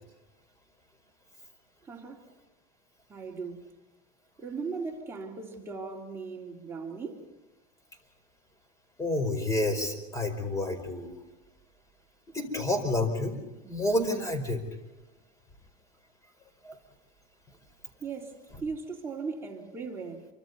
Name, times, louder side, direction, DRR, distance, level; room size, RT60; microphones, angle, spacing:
voice 1, 1.8-2.3 3.1-3.7 4.4-7.2 18.0-20.3, right 4 dB, 10° right, 3.4 m, -38 dB
voice 2, 9.0-11.1 12.3-13.4 13.6-14.6 16.6-16.8, left 1 dB, 15° left, 4.9 m, -29 dB
28.0 x 25.5 x 4.1 m
supercardioid pair, 135°, 20 cm